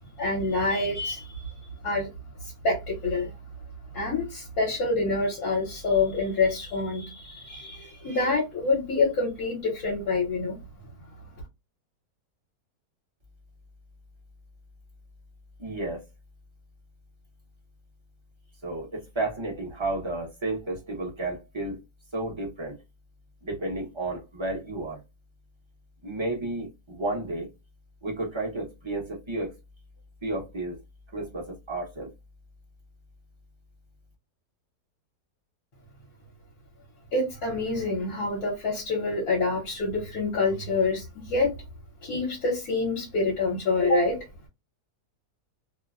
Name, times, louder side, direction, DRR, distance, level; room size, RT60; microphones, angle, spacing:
voice 1, 0.2-1.5 1.8-2.1 2.4-3.3 3.9-10.6 37.1-41.6 42.0-44.3, left 3 dB, 65° left, 1.3 m, -27 dB
voice 2, 15.6-16.0 18.6-21.8 22.1-22.7 23.4-25.0 26.0-27.5 28.0-29.5 30.2-30.8 31.1-32.1, right 2 dB, 25° right, 0.6 m, -32 dB
2.9 x 2.1 x 2.3 m
omnidirectional pair, 1.7 m